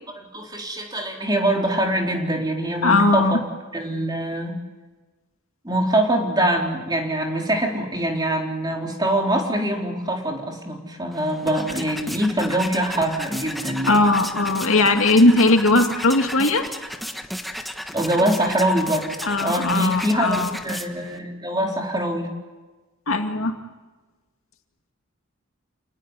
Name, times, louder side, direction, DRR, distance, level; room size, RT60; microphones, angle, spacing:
voice 1, 0.3-3.3 3.7-4.6 5.6-14.0 17.9-19.1 19.4-22.3, right 1 dB, 20° right, 1 dB, 4.0 m, -24 dB
voice 2, 2.8-3.4 13.8-16.7 19.2-20.6 23.1-23.5, left 2 dB, 80° left, 5 dB, 2.3 m, -18 dB
sound 1, 11.1-21.2, equal, ahead, 1.4 m, -34 dB
29.0 x 19.5 x 9.8 m, 1.2 s
head